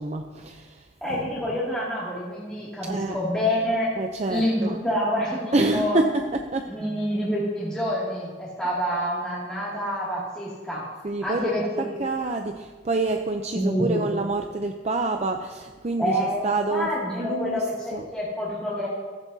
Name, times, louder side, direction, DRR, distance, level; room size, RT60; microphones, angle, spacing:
voice 1, 0.0-1.3 2.9-3.2 4.0-4.8 5.5-6.7 11.0-11.5 11.8-16.9 17.2-17.6 17.9-18.1, right 2 dB, 35° right, 4 dB, 0.5 m, -27 dB
voice 2, 1.0-3.9 4.3-6.0 6.7-10.8 11.2-11.9 13.5-14.0 16.0-16.4 16.7-18.9, equal, 5° left, -9 dB, 2.4 m, -27 dB
15.0 x 14.0 x 2.8 m, 1.4 s
head